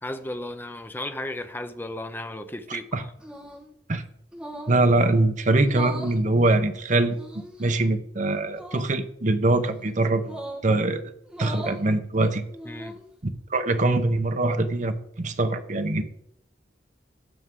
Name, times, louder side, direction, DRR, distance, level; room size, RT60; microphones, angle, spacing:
voice 1, 0.0-3.1 12.6-13.0, left 1 dB, 10° left, 9 dB, 0.7 m, -35 dB
voice 2, 2.7-3.0 3.9-4.0 4.7-7.2 7.6-10.4 10.6-11.0 11.4-12.4 13.5-16.0, right 2 dB, 45° right, 8 dB, 0.9 m, -23 dB
sound 1, 3.2-3.7 4.3-4.8 5.6-6.2 7.1-7.7 8.5-8.9 10.2-10.7 11.3-11.8 12.5-13.1, equal, 5° right, 1.5 m, -38 dB
15.5 x 6.2 x 3.7 m, 0.72 s
head